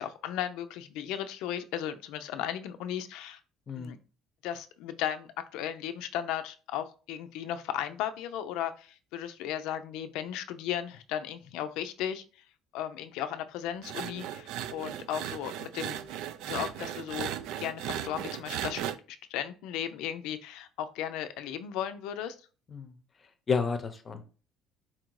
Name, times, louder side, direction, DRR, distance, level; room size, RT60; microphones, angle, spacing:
voice 1, 0.0-3.4 3.8-4.0 4.4-12.2 12.7-16.0 16.5-22.4, left 10 dB, 80° left, 0.5 m, -36 dB
sound 1, 13.8-19.0, right 10 dB, 80° right, 0.4 m, -37 dB
voice 2, 23.5-24.3, left 5 dB, 25° left, 0.6 m, -31 dB
4.2 x 2.5 x 4.6 m
cardioid pair, 155°, 0 cm